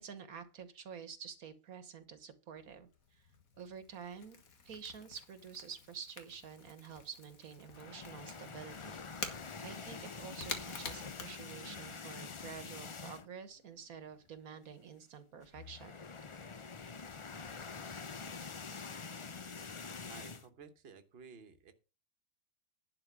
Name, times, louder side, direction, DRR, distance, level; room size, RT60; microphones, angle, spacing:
voice 1, 0.0-3.2 3.6-4.4 4.6-15.9, right 7 dB, 75° right, 11 dB, 1.6 m, -49 dB
Crackle / Crack, 2.6-12.1, left 5 dB, 70° left, 1.9 m, -49 dB
sound 1, 7.7-13.5 13.8-14.0 14.3-14.4 15.4-20.5, left 5 dB, 45° left, 0.4 m, -46 dB
voice 2, 20.1-21.7, right 6 dB, 45° right, 7 dB, 1.3 m, -54 dB
11.0 x 4.9 x 7.3 m, 0.32 s
omnidirectional pair, 1.5 m